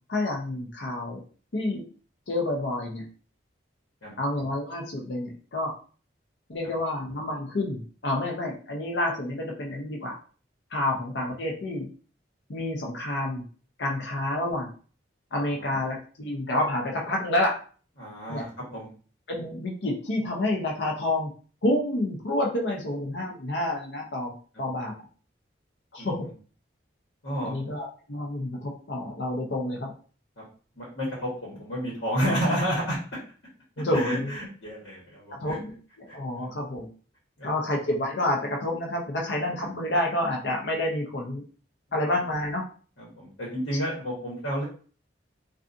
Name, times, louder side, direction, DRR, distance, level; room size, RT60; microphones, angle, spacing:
voice 1, 0.1-1.2 1.5-1.8 2.3-3.0 4.2-5.7 6.5-10.2 10.7-11.9 12.5-13.4 13.8-14.7 15.3-17.6 18.3-18.4 19.3-21.3 21.6-24.9 25.9-26.3 27.4-29.9 33.8-34.3 35.3-36.9 37.4-41.4 41.9-42.6, left 1 dB, 65° left, -1 dB, 0.6 m, -29 dB
voice 2, 15.3-15.7 18.0-18.9 26.0-26.3 27.2-27.6 30.4-30.5 30.8-33.0 33.9-35.6 36.1-36.4 37.4-37.5 43.0-44.6, equal, 80° left, -5 dB, 1.2 m, -31 dB
2.5 x 2.4 x 2.5 m, 0.40 s
head